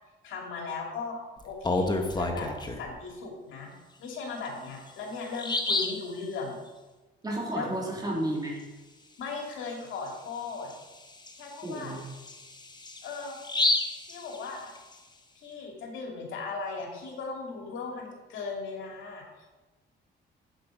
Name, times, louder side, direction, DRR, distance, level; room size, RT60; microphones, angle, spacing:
voice 1, 0.2-2.5 2.8-3.7 4.0-6.6 7.5-7.7 9.2-10.7 11.4-12.0 13.0-13.4 14.1-14.7 15.4-19.5, left 4 dB, 80° left, 0 dB, 2.3 m, -37 dB
Bird vocalization bird call bird song, 1.4-2.9 4.4-4.5 4.9-5.0 5.3-6.1 9.5-9.7 10.1-10.2 10.7-14.9, left 2 dB, 20° left, 1.1 m, -30 dB
voice 2, 7.2-8.6 11.6-12.1, right 1 dB, 20° right, -3 dB, 3.5 m, -32 dB
8.2 x 7.7 x 5.0 m, 1.2 s
cardioid pair, 90°, 20 cm